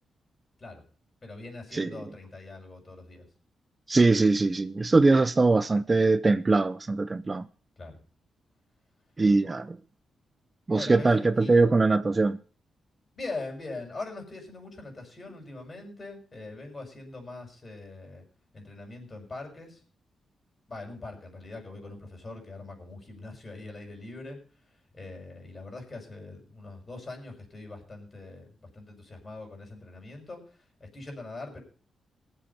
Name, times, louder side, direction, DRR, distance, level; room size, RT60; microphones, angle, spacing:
voice 1, 1.2-3.3 7.8-8.0 10.7-11.6 13.1-18.2 18.5-19.8 20.7-24.4 24.6-31.6, left 2 dB, 35° left, 6.2 m, -42 dB
voice 2, 3.9-7.5 9.2-9.8 10.7-12.4, right 3 dB, 30° right, 0.6 m, -22 dB
18.5 x 7.9 x 5.6 m
cardioid pair, 80°, 0 cm